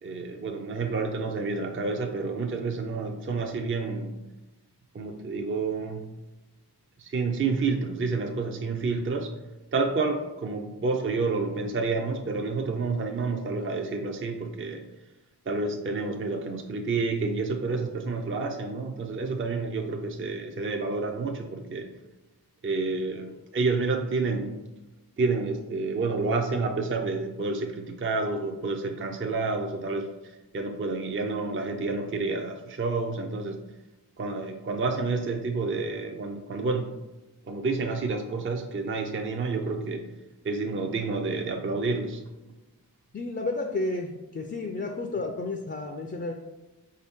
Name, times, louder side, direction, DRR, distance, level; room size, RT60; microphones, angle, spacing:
voice 1, 0.0-4.1 4.9-6.0 7.0-9.3 9.7-14.8 15.5-21.9 22.6-24.7 25.2-30.1 30.5-33.6 34.2-36.9 37.5-40.1 40.4-42.2, right 3 dB, 30° right, 4 dB, 0.4 m, -29 dB
voice 2, 43.1-46.3, left 2 dB, 30° left, 3 dB, 0.4 m, -31 dB
4.5 x 2.8 x 3.5 m, 1.1 s
wide cardioid pair, 50°, 40 cm